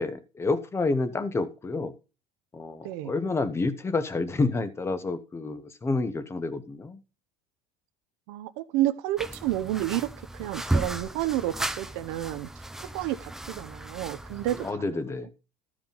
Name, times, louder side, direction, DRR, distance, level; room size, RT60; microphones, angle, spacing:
voice 1, 0.0-1.9 2.5-7.0 14.6-15.3, left 3 dB, 15° left, 12 dB, 0.9 m, -29 dB
voice 2, 8.3-12.5 12.9-15.0, right 14 dB, 75° right, 10 dB, 0.8 m, -30 dB
sound 1, 9.2-14.7, right 2 dB, 5° right, 0.4 m, -34 dB
13.0 x 5.0 x 5.3 m, 0.32 s
cardioid pair, 150°, 17 cm